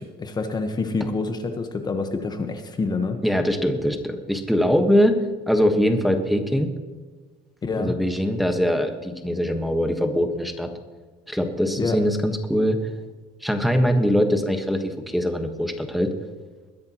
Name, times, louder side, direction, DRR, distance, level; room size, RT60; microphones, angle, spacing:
voice 1, 0.0-3.2 7.6-7.9 11.8-12.0, left 3 dB, 25° left, 6 dB, 1.2 m, -27 dB
voice 2, 3.2-6.7 7.8-10.7 11.3-12.9 13.4-16.1, equal, ahead, 4 dB, 1.4 m, -22 dB
21.5 x 10.5 x 3.0 m, 1.3 s
cardioid pair, 130°, 16 cm